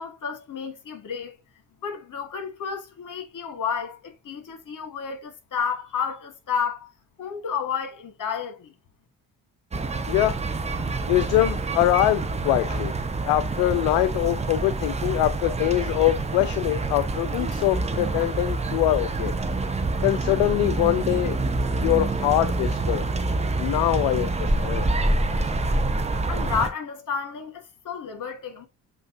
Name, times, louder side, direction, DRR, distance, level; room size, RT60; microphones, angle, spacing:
voice 1, 0.0-1.4 1.8-6.9 7.2-8.7 26.2-28.7, left 6 dB, 40° left, 1.5 m, -31 dB
sound 1, 9.7-26.7, right 2 dB, 15° right, 0.7 m, -26 dB
voice 2, 11.1-12.9 13.3-19.3 20.0-21.4 21.8-23.0 23.6-24.9, left 15 dB, 55° left, 0.5 m, -23 dB
7.5 x 2.5 x 2.6 m
figure-of-eight pair, 45°, 50 cm